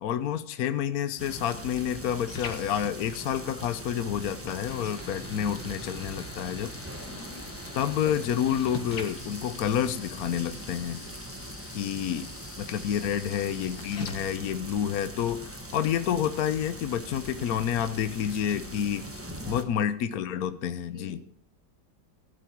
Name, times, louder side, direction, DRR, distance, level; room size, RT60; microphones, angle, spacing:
voice 1, 0.0-6.7 7.7-11.0 11.7-12.3 12.6-19.0 19.5-21.2, left 9 dB, 60° left, 11 dB, 1.0 m, -29 dB
sound 1, 1.0-15.0, left 5 dB, 90° left, 2.5 m, -45 dB
sound 2, 1.2-19.6, right 1 dB, 10° right, 1.1 m, -41 dB
voice 2, 7.1-7.5 13.0-13.5 13.9-14.0 19.5-19.7 20.9-21.3, left 1 dB, 45° left, -2 dB, 3.4 m, -50 dB
15.5 x 12.0 x 4.5 m, 0.66 s
omnidirectional pair, 2.1 m